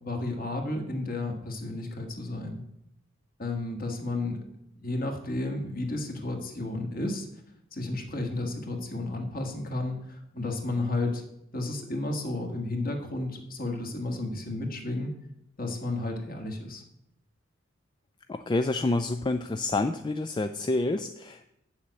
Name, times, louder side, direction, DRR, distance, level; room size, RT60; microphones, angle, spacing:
voice 1, 0.0-2.6 3.4-4.4 4.8-7.3 7.7-11.2 11.5-15.1 15.6-16.8, left 2 dB, 45° left, 3 dB, 1.6 m, -32 dB
voice 2, 18.3-21.5, left 2 dB, 20° left, 9 dB, 0.3 m, -28 dB
8.1 x 7.1 x 6.4 m, 0.82 s
head